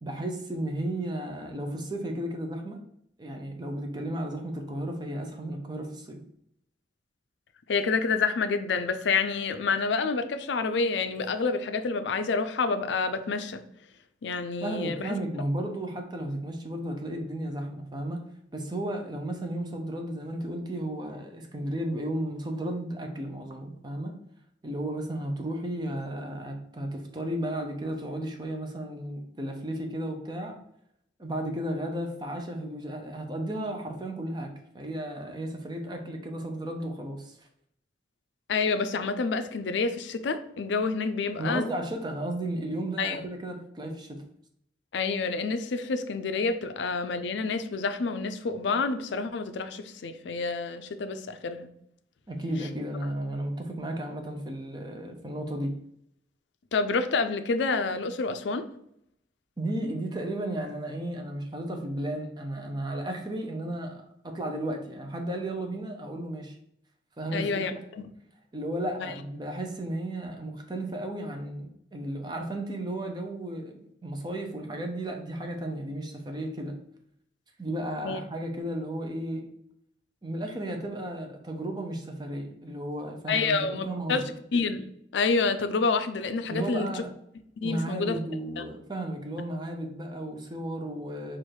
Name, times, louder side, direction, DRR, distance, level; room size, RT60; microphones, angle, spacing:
voice 1, 0.0-2.8 3.2-6.2 14.6-18.2 18.5-24.2 24.6-30.6 31.2-37.4 41.4-44.2 52.3-55.7 59.6-66.6 67.2-67.8 68.5-76.8 77.6-79.5 80.2-83.5 83.9-84.3 86.5-87.1 87.6-91.4, right 1 dB, 25° right, 3 dB, 0.6 m, -34 dB
voice 2, 7.7-13.6 14.2-15.2 38.5-41.6 43.0-43.2 44.9-51.7 56.7-58.7 67.3-68.0 69.0-69.1 78.0-78.2 83.3-84.2 84.5-84.9 85.1-87.0 87.6-88.2, left 4 dB, 75° left, 9 dB, 0.4 m, -28 dB
4.6 x 2.5 x 4.5 m, 0.74 s
head